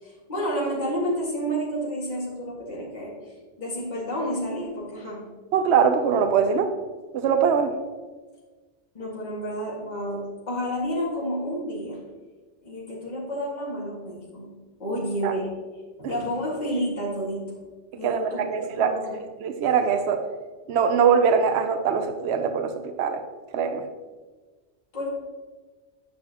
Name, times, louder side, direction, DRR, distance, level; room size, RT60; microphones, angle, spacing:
voice 1, 0.0-5.3 8.9-12.0 12.6-14.5 14.8-15.5 16.0-17.7 17.9-19.2 24.9-25.1, equal, 40° left, -6 dB, 2.0 m, -30 dB
voice 2, 5.5-6.7 7.1-7.7 15.2-15.4 16.0-16.1 18.0-19.0 19.4-20.3 20.7-23.2 23.5-23.8, right 6 dB, 70° right, 8 dB, 0.9 m, -22 dB
9.8 x 6.5 x 2.9 m, 1.3 s
omnidirectional pair, 1.2 m